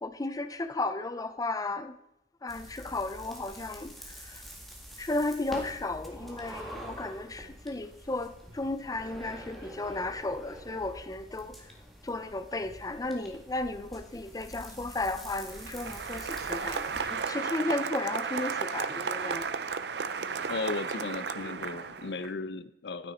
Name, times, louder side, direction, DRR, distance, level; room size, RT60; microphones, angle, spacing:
voice 1, 0.0-1.9 2.4-4.0 4.2-4.4 5.0-11.5 12.0-19.7, left 2 dB, 20° left, 0.5 m, -34 dB
sound 1, 2.5-17.1, equal, ahead, 1.9 m, -46 dB
Applause, 15.4-22.3, right 5 dB, 70° right, 0.6 m, -34 dB
voice 2, 20.5-23.1, left 3 dB, 70° left, 0.5 m, -35 dB
12.0 x 9.7 x 4.3 m
head